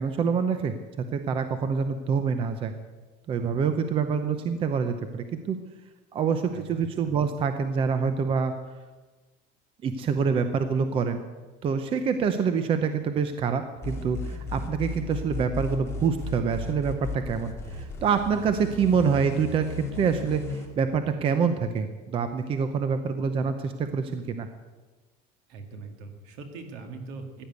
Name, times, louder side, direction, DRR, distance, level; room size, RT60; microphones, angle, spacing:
voice 1, 0.0-2.7 3.3-5.6 6.1-8.5 9.8-11.2 11.6-24.5, right 6 dB, 25° right, 9 dB, 0.7 m, -26 dB
sound 1, 13.8-20.7, left 2 dB, 15° left, 1.9 m, -35 dB
voice 2, 25.5-27.5, right 4 dB, 65° right, 6 dB, 2.3 m, -41 dB
15.5 x 10.0 x 8.1 m, 1.3 s
cardioid pair, 180°, 20 cm